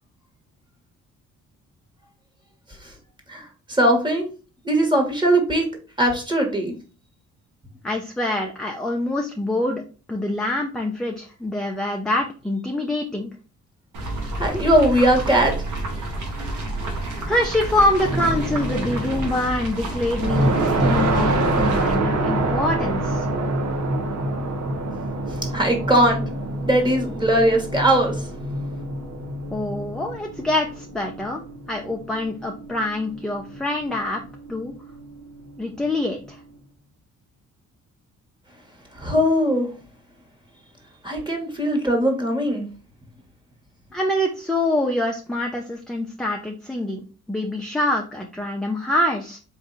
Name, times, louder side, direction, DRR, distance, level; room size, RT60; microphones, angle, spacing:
voice 1, 3.3-4.3 4.6-5.7 6.0-6.7 14.4-15.5 25.3-26.2 26.6-28.3 38.9-39.7 41.0-42.7, right 1 dB, 15° right, 2 dB, 1.5 m, -20 dB
voice 2, 7.8-9.8 10.1-13.3 17.3-23.3 29.5-31.4 31.7-34.2 34.5-34.7 35.6-36.4 43.9-49.4, left 1 dB, ahead, 0 dB, 0.7 m, -25 dB
sound 1, 13.9-22.0, right 1 dB, 85° right, 1.4 m, -30 dB
sound 2, 18.0-19.6 20.0-36.4, right 2 dB, 60° right, 1.0 m, -27 dB
3.9 x 2.7 x 3.9 m, 0.36 s
cardioid pair, 90°, 30 cm